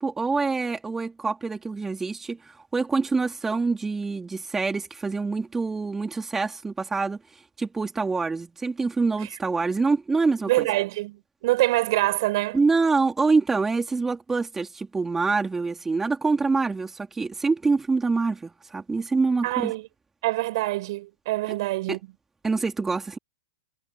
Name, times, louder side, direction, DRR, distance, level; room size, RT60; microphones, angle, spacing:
voice 1, 0.0-10.7 12.5-19.7 21.9-22.0 22.4-23.2, right 4 dB, 10° right, 4.1 m, -25 dB
voice 2, 10.4-12.6 19.4-19.9 20.2-22.0, right 18 dB, 55° right, 5.8 m, -25 dB
hypercardioid pair, 120°, 3 cm